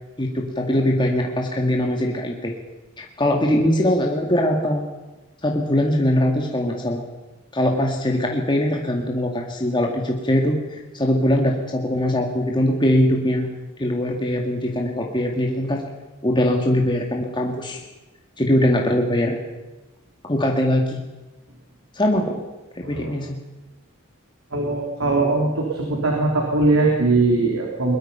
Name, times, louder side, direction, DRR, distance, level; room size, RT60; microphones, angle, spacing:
voice 1, 0.2-2.6 3.0-4.8 5.4-7.0 7.5-13.5 13.8-15.8 16.2-17.8 18.4-19.4 20.3-21.0 21.9-22.4 22.8-23.4, left 1 dB, 25° left, 0 dB, 2.0 m, -21 dB
voice 2, 22.8-23.2 24.5-28.0, right 3 dB, 80° right, 0 dB, 3.5 m, -21 dB
21.5 x 21.5 x 5.7 m, 1.1 s
head